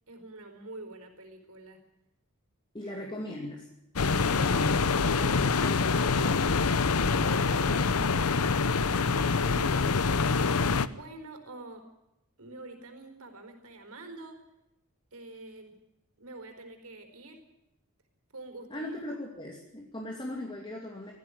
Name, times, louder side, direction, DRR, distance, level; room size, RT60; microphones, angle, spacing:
voice 1, 0.1-1.8 2.8-2.9 4.2-5.4 8.9-10.6 10.9-11.9 12.4-14.4 15.1-15.7 16.2-17.4 18.3-18.9, right 2 dB, 70° right, 6 dB, 4.6 m, -46 dB
voice 2, 2.7-3.7 4.1-6.6 6.8-8.6 18.7-21.1, left 1 dB, 20° left, 0 dB, 2.7 m, -40 dB
sound 1, 4.0-10.9, left 4 dB, 80° left, 0.8 m, -25 dB
18.0 x 14.5 x 10.0 m, 0.88 s
head